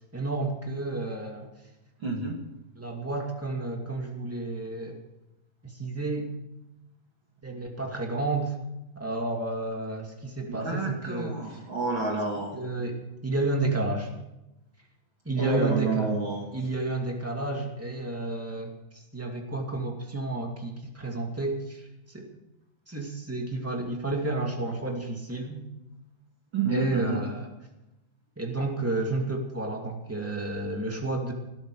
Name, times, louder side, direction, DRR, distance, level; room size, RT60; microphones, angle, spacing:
voice 1, 0.1-1.5 2.7-5.0 5.6-6.3 7.4-8.5 8.9-11.6 12.3-14.1 15.2-16.1 16.5-22.3 22.9-25.6 26.7-27.5 28.3-31.3, right 2 dB, 5° right, 1 dB, 1.6 m, -31 dB
voice 2, 2.0-2.3 10.5-12.6 15.4-16.4 26.5-27.2, right 3 dB, 35° right, 0 dB, 2.8 m, -29 dB
19.5 x 13.0 x 4.9 m, 0.95 s
omnidirectional pair, 4.2 m